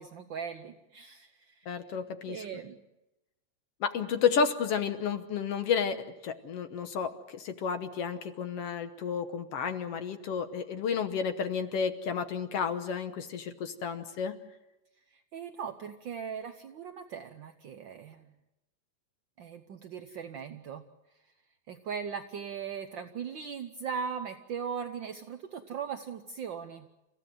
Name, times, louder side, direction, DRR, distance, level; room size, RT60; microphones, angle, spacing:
voice 1, 0.0-1.7 2.3-2.8 15.1-18.3 19.4-20.8 21.7-26.9, right 7 dB, 75° right, 7 dB, 1.0 m, -39 dB
voice 2, 1.7-2.4 3.8-14.4, left 6 dB, 65° left, 8 dB, 1.9 m, -31 dB
30.0 x 15.5 x 7.7 m, 0.97 s
omnidirectional pair, 3.3 m